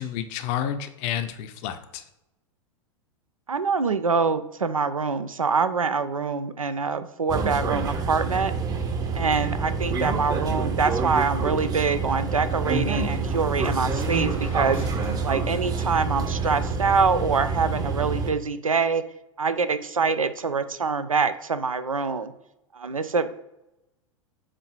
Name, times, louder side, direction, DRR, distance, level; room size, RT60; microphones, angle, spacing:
voice 1, 0.0-2.0, left 10 dB, 40° left, 9 dB, 0.7 m, -30 dB
voice 2, 3.5-8.5 9.1-14.8 15.2-19.0 19.4-22.3 22.7-23.3, right 5 dB, 85° right, 11 dB, 0.5 m, -25 dB
sound 1, 7.3-18.3, right 4 dB, 20° right, 0.7 m, -27 dB
sound 2, 11.2-16.7, left 2 dB, 80° left, 2.2 m, -40 dB
7.5 x 2.7 x 4.7 m, 0.91 s
figure-of-eight pair, 90°, 17 cm